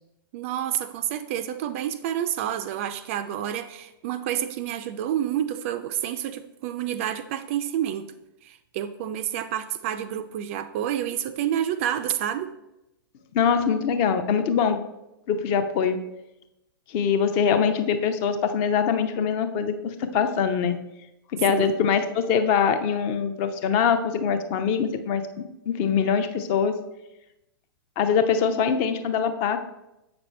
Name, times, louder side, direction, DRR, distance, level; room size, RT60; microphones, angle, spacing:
voice 1, 0.3-8.1 8.4-12.5 21.5-21.7, right 10 dB, 35° right, 11 dB, 0.4 m, -29 dB
voice 2, 13.3-14.8 15.3-16.0 16.9-20.8 21.3-25.2 25.7-26.8 28.0-29.6, left 7 dB, 30° left, 9 dB, 0.6 m, -23 dB
7.8 x 6.1 x 3.2 m, 0.92 s
figure-of-eight pair, 110°, 12 cm